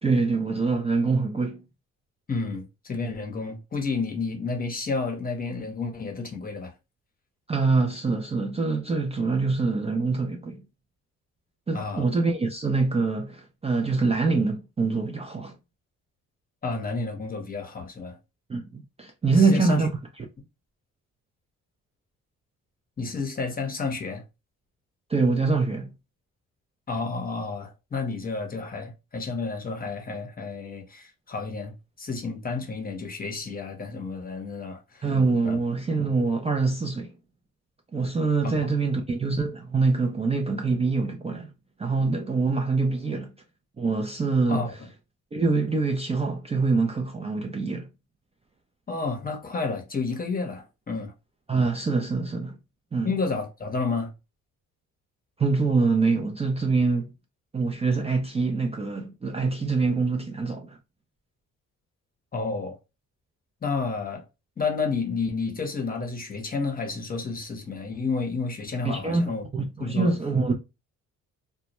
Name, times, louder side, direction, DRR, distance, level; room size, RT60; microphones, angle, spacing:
voice 1, 0.0-1.6 7.5-10.6 11.7-15.5 18.5-19.9 25.1-25.9 35.0-37.1 37.9-41.5 41.8-43.3 43.8-44.6 45.3-47.9 51.5-52.6 52.9-53.1 55.4-57.1 57.5-60.8 68.8-70.5, right 4 dB, 20° right, 0.4 m, -25 dB
voice 2, 2.3-6.7 11.7-12.1 16.6-18.2 19.3-19.9 23.0-24.2 26.9-35.1 35.4-35.6 38.4-38.7 44.5-44.9 48.9-51.1 53.0-54.1 62.3-62.8 63.6-64.3 64.6-69.4 69.8-70.1, left 4 dB, 30° left, 0.8 m, -31 dB
2.1 x 2.0 x 2.8 m
cardioid pair, 90°, 30 cm